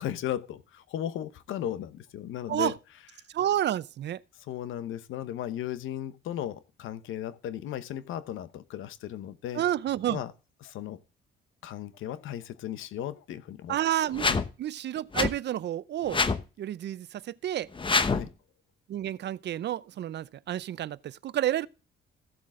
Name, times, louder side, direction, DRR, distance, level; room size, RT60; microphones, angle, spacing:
voice 1, 0.0-2.7 4.4-9.6 10.1-10.3 10.6-11.0 11.6-13.8 14.2-14.4 18.0-18.3, left 11 dB, 85° left, 1.0 m, -36 dB
voice 2, 3.3-4.2 9.5-10.2 13.7-14.3 14.6-16.2 16.6-17.7 18.9-21.7, right 12 dB, 60° right, 0.6 m, -30 dB
sound 1, 14.1-14.5 15.1-15.3 16.1-16.4 17.7-18.3, left 4 dB, 25° left, 1.0 m, -25 dB
15.0 x 7.5 x 3.7 m
cardioid pair, 90°, 20 cm